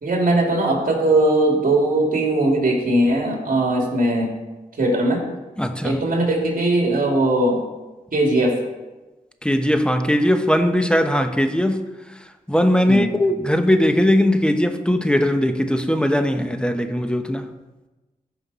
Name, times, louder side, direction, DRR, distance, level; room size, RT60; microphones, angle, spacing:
voice 1, 0.0-4.3 4.8-5.2 5.8-7.6 8.1-8.6 12.9-13.1, right 1 dB, 60° right, 2.7 m, -19 dB
voice 2, 5.6-6.0 9.4-17.5, equal, 5° left, 1.0 m, -19 dB
15.0 x 5.7 x 4.2 m
cardioid pair, 55°, 16 cm